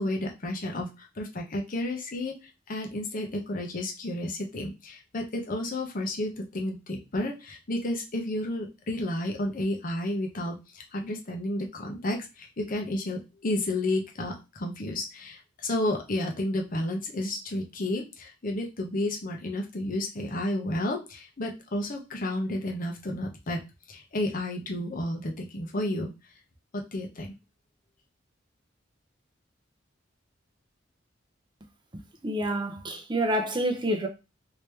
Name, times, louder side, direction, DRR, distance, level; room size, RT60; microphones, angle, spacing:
voice 1, 0.0-23.6 23.9-26.1 26.7-27.3, left 1 dB, 45° left, 0.8 m, -31 dB
voice 2, 31.9-34.1, right 1 dB, 25° right, 0.7 m, -28 dB
3.2 x 2.8 x 3.3 m
head